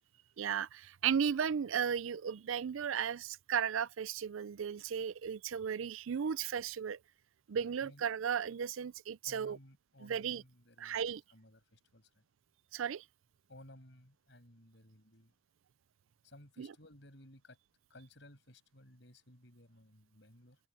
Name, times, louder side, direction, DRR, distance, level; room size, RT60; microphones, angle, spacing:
voice 1, 0.4-7.0 7.5-9.6 10.0-10.4 10.8-11.2 12.7-13.0 16.6-16.7, right 7 dB, 80° right, 0.4 m, -35 dB
voice 2, 7.5-8.0 9.2-12.2 13.5-15.3 16.2-17.6 17.9-20.6, left 1 dB, 60° left, 7.6 m, -58 dB
open air
head